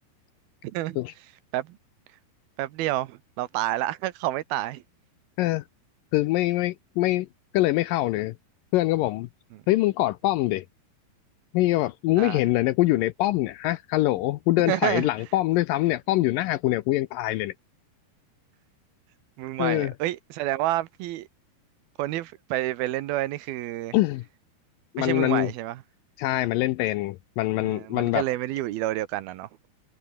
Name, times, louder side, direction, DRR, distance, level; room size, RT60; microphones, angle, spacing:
voice 1, 0.6-1.0 1.5-1.8 2.6-4.8 9.5-9.6 12.2-12.4 14.7-15.1 19.4-21.3 22.0-23.9 25.0-25.8 27.6-29.5, right 15 dB, 75° right, 2.8 m, -29 dB
voice 2, 6.1-7.3 7.5-8.4 8.7-9.3 9.7-10.7 11.5-17.5 19.6-19.9 23.9-24.2 24.9-25.5 26.2-28.2, left 17 dB, 80° left, 2.1 m, -24 dB
omnidirectional pair, 4.4 m